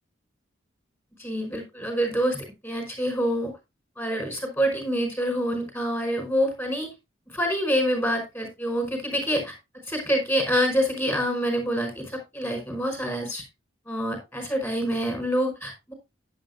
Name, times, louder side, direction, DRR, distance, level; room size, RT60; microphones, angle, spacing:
voice 1, 1.2-3.5 4.0-6.9 7.3-9.5 9.9-13.4 13.8-15.9, equal, 10° left, 3 dB, 5.1 m, -26 dB
11.0 x 10.5 x 2.6 m, 0.24 s
head